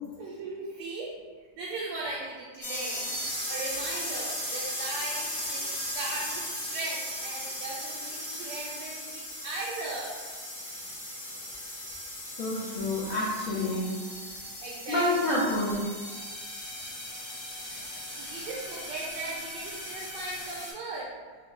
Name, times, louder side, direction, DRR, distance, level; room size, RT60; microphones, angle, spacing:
voice 1, 0.2-1.1 1.6-3.1 3.5-10.2 14.6-15.0 17.7-17.9 18.2-21.1, right 2 dB, 75° right, -5 dB, 1.1 m, -38 dB
sound 1, 2.6-20.7, left 1 dB, 50° left, 1.4 m, -37 dB
voice 2, 12.4-14.0 14.9-15.9, left 1 dB, 75° left, -7 dB, 0.8 m, -28 dB
3.8 x 2.3 x 3.1 m, 1.5 s
omnidirectional pair, 2.0 m